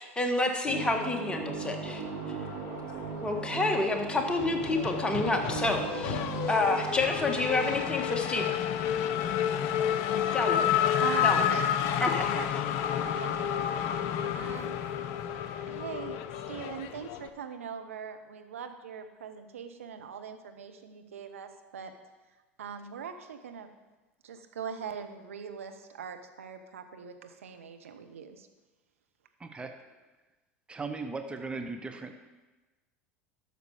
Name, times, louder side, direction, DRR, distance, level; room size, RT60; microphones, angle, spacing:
voice 1, 0.0-2.0 3.2-6.2 6.5-8.6 10.3-10.7 11.2-11.4 12.0-12.3, left 2 dB, 15° left, 3 dB, 1.6 m, -29 dB
sound 1, 0.6-7.8, right 4 dB, 60° right, 2.3 m, -38 dB
voice 2, 2.2-2.6 29.4-29.7 30.7-32.1, right 3 dB, 15° right, 6 dB, 0.9 m, -38 dB
Race car auto racing / Accelerating revving vroom, 2.3-3.3 3.6-17.3, left 9 dB, 55° left, 0.7 m, -30 dB
voice 3, 11.0-11.7 12.3-12.5 13.0-13.4 13.9-14.1 14.3-14.8 15.7-16.2 16.5-21.9 22.6-23.7 24.2-28.5, right 7 dB, 75° right, 6 dB, 0.8 m, -41 dB
12.0 x 6.7 x 4.9 m, 1.2 s
figure-of-eight pair, 80°, 7 cm